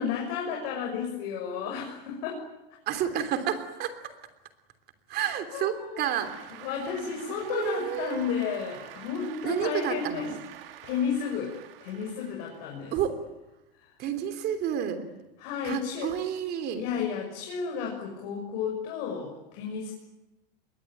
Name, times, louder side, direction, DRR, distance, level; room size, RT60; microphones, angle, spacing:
voice 1, 0.0-2.4 5.5-6.0 6.6-10.3 10.8-11.5 11.8-12.9 13.8-13.9 15.4-16.1 16.7-19.9, left 6 dB, 50° left, 0 dB, 6.5 m, -32 dB
voice 2, 2.9-4.0 5.1-7.1 7.4-8.3 9.4-10.4 12.9-13.2 14.0-15.1 15.6-16.8, right 9 dB, 35° right, 9 dB, 3.2 m, -30 dB
Cheering / Applause, 6.0-12.9, right 12 dB, 70° right, 2.9 m, -47 dB
27.0 x 22.5 x 9.4 m, 0.98 s
supercardioid pair, 155°, 29 cm